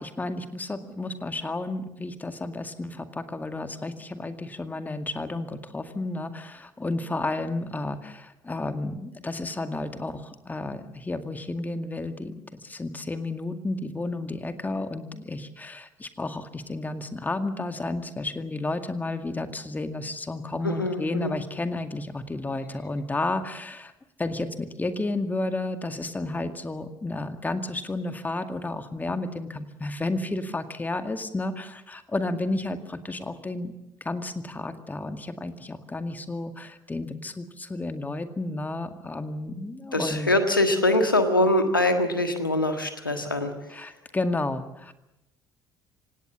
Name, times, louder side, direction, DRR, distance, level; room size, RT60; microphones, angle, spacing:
voice 1, 0.0-23.9 24.2-33.7 34.0-40.3 43.7-44.9, left 2 dB, 15° left, 8 dB, 2.1 m, -32 dB
voice 2, 20.6-21.3 39.9-43.5, left 1 dB, 85° left, 7 dB, 1.6 m, -23 dB
27.5 x 17.5 x 7.5 m, 0.89 s
figure-of-eight pair, 55°, 11 cm